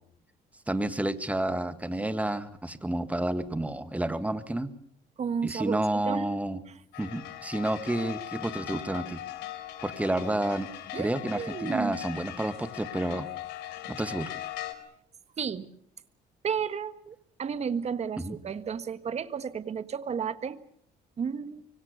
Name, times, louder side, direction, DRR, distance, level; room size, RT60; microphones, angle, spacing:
voice 1, 0.7-4.7 5.4-6.6 7.0-9.2 9.8-10.7 11.0-13.3 13.9-14.3 18.2-18.4, right 1 dB, 10° right, 1.8 m, -30 dB
voice 2, 5.2-5.8 6.0-6.3 10.9-12.0 15.4-15.7 16.4-20.6 21.2-21.7, right 7 dB, 40° right, 1.5 m, -32 dB
sound 1, 6.9-14.7, left 13 dB, 90° left, 3.4 m, -40 dB
25.0 x 24.5 x 6.7 m
cardioid pair, 110°, 17 cm